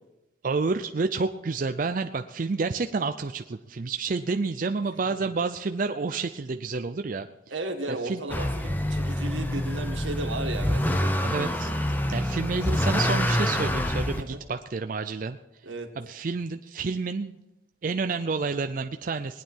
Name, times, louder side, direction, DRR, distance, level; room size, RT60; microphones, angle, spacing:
voice 1, 0.4-7.3 8.0-8.2 9.3-9.6 11.2-11.7 12.1-15.4 16.0-17.4 17.8-19.4, right 4 dB, 45° right, 7 dB, 0.4 m, -29 dB
voice 2, 7.5-11.1 14.2-14.4 15.6-15.9, right 2 dB, 85° right, 3 dB, 1.9 m, -34 dB
Motor vehicle (road) / Accelerating revving vroom, 8.3-14.2, left 1 dB, 10° left, 0.7 m, -26 dB
20.0 x 9.3 x 4.4 m, 0.95 s
head